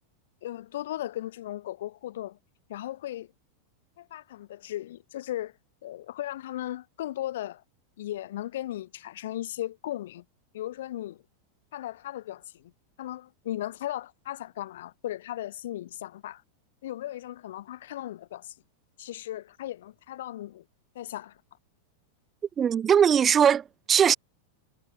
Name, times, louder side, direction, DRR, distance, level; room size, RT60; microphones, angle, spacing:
voice 1, 0.4-2.4 2.7-3.3 4.0-5.5 5.8-7.6 8.0-10.2 10.5-11.2 11.7-12.7 13.0-16.4 16.8-18.5 19.0-20.6 20.9-21.4, left 13 dB, 55° left, 0.9 m, -36 dB
voice 2, 22.6-24.2, right 8 dB, 25° right, 0.9 m, -20 dB
figure-of-eight pair, 90°, 0 cm